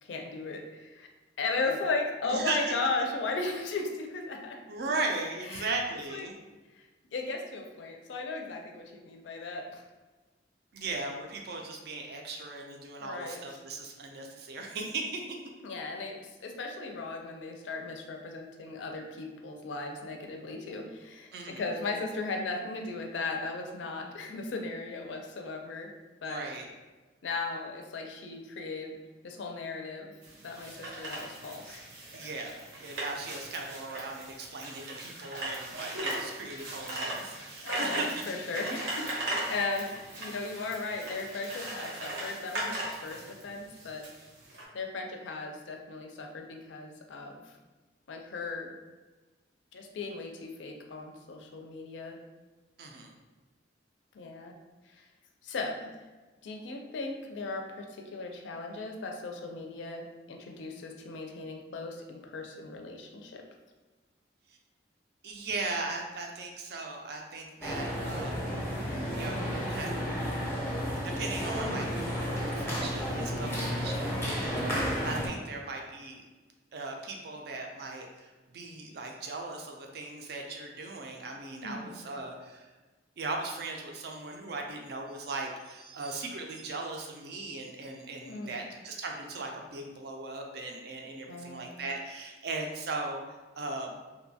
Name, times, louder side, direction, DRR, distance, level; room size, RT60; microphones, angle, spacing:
voice 1, 0.0-1.1 1.4-4.6 5.5-5.7 6.1-6.3 6.7-6.9 7.1-9.8 13.0-13.4 15.6-25.9 26.2-26.5 27.2-28.9 29.2-30.1 30.4-31.8 37.6-44.1 44.7-47.5 48.1-48.7 49.7-52.2 54.1-54.6 54.9-55.0 55.4-55.9 56.4-63.4 81.6-82.0 88.2-88.6 91.3-91.7, left 3 dB, 85° left, 2 dB, 0.4 m, -36 dB
voice 2, 2.2-2.7 4.7-6.3 10.7-15.3 21.3-21.6 26.2-26.7 32.1-38.2 39.3-39.4 52.8-53.1 65.2-68.4 69.2-70.0 71.0-76.2 76.7-82.7 83.2-93.2 93.6-93.9, right 3 dB, 60° right, 2 dB, 0.4 m, -38 dB
sound 1, 30.2-44.6, right 1 dB, 85° right, 0.7 m, -38 dB
sound 2, 67.6-75.3, equal, 15° left, 0.5 m, -32 dB
2.7 x 2.2 x 2.6 m, 1.2 s
head